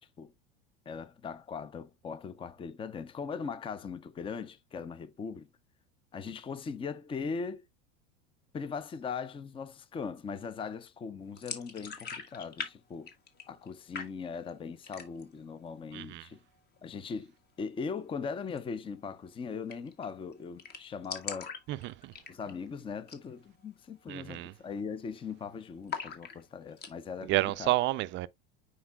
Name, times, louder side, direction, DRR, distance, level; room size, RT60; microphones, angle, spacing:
voice 1, 0.9-5.5 6.1-7.7 8.5-13.1 13.5-16.4 16.8-17.3 17.6-21.5 22.3-27.7, left 5 dB, 20° left, 0.6 m, -39 dB
sound 1, 11.4-12.7 13.0-13.7 13.9-14.5 14.8-15.4 15.7-15.8 16.1-16.8 18.5-18.6 18.9-19.0 19.2-19.3 19.7-20.0 20.3-20.4 20.6-22.7 23.0-23.3 23.6-23.7 24.3-24.5 24.8-25.4 25.9-26.9, left 6 dB, 35° left, 1.6 m, -41 dB
voice 2, 15.9-16.2 21.7-22.1 24.1-24.5 27.3-28.3, right 18 dB, 40° right, 0.5 m, -30 dB
9.5 x 4.4 x 2.2 m
supercardioid pair, 120°, 29 cm